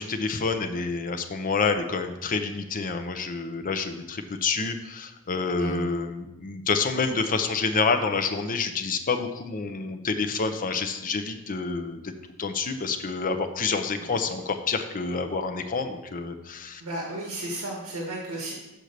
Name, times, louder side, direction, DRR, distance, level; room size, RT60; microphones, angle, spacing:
voice 1, 0.0-12.1 12.4-16.8, left 4 dB, 40° left, 6 dB, 0.6 m, -28 dB
voice 2, 5.6-5.9 14.0-14.3 16.8-18.5, right 1 dB, 70° right, -2 dB, 1.5 m, -34 dB
6.5 x 4.4 x 6.6 m, 1.0 s
head